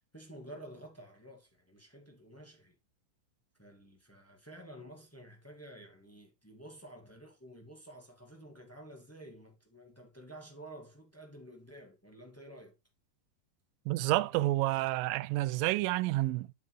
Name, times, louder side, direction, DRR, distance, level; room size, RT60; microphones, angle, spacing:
voice 1, 0.1-2.7 3.6-12.7, right 1 dB, 10° left, 0.7 m, -51 dB
voice 2, 13.9-16.6, right 17 dB, 85° right, 2.3 m, -29 dB
8.3 x 7.3 x 3.2 m
omnidirectional pair, 4.0 m